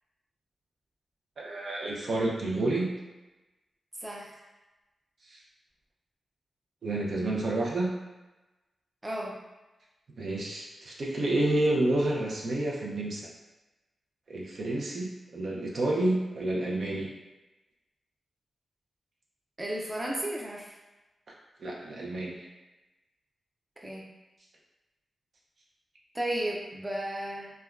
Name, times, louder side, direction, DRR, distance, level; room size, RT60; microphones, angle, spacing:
voice 1, 1.4-2.9 5.3-5.4 6.8-7.9 10.2-13.3 14.3-17.1 21.6-22.5, right 1 dB, 65° right, -3 dB, 0.6 m, -29 dB
voice 2, 4.0-4.4 9.0-9.3 19.6-20.7 23.8-24.0 26.1-27.5, right 1 dB, 20° right, -2 dB, 0.5 m, -34 dB
3.3 x 2.2 x 2.4 m, 1.1 s
cardioid pair, 75°, 0 cm